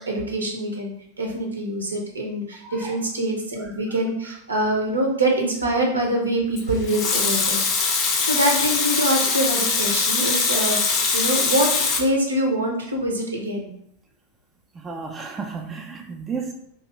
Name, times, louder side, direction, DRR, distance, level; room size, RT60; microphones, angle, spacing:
voice 1, 0.1-11.7 12.0-13.7, right 1 dB, 75° right, 0.6 m, -25 dB
voice 2, 2.6-3.0 3.6-3.7 11.2-11.3 14.7-16.5, right 5 dB, 20° right, 0.4 m, -33 dB
Water tap faucet / Sink (filling or washing) / Liquid, 6.6-12.0, left 4 dB, 35° left, 0.5 m, -22 dB
2.8 x 2.4 x 3.1 m
figure-of-eight pair, 90°, 0 cm